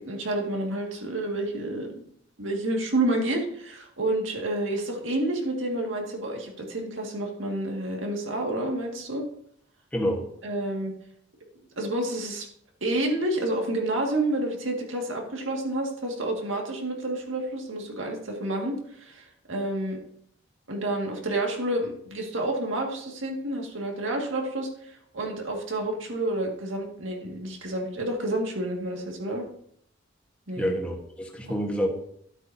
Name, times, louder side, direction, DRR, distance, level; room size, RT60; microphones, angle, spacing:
voice 1, 0.0-1.9 2.4-9.2 10.4-10.9 11.8-12.5 12.8-20.0 20.7-29.5 30.5-30.7, right 1 dB, 80° right, 1 dB, 2.0 m, -29 dB
voice 2, 30.6-31.9, equal, 5° left, 0 dB, 1.4 m, -27 dB
12.5 x 8.1 x 2.8 m, 0.68 s
head